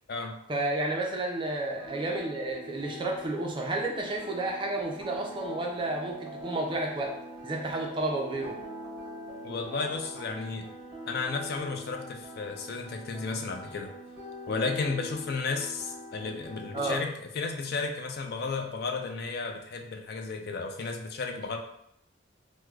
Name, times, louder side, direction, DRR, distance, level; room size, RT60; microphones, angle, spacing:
voice 1, 0.5-7.1 7.4-8.6 16.7-17.0, right 2 dB, 25° right, 1 dB, 0.4 m, -31 dB
sound 1, 1.8-17.0, left 1 dB, 5° right, 1.2 m, -44 dB
sound 2, 5.0-10.3, right 2 dB, 25° left, 1.1 m, -45 dB
voice 2, 9.4-10.7 11.1-13.9 14.5-21.6, left 4 dB, 50° left, 5 dB, 0.3 m, -33 dB
4.6 x 2.1 x 2.3 m, 0.73 s
head